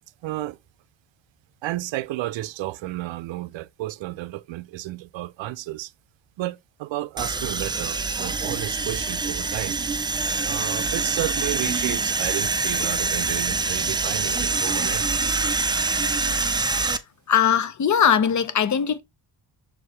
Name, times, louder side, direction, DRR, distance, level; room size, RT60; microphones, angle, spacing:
voice 1, 0.2-0.6 1.6-5.9 6.4-9.8 10.4-15.1, right 16 dB, 85° right, 0.5 m, -32 dB
sound 1, 7.2-17.0, right 3 dB, 10° right, 0.3 m, -25 dB
voice 2, 17.3-19.0, left 8 dB, 40° left, 0.7 m, -20 dB
6.2 x 4.7 x 3.2 m
wide cardioid pair, 140°, 44 cm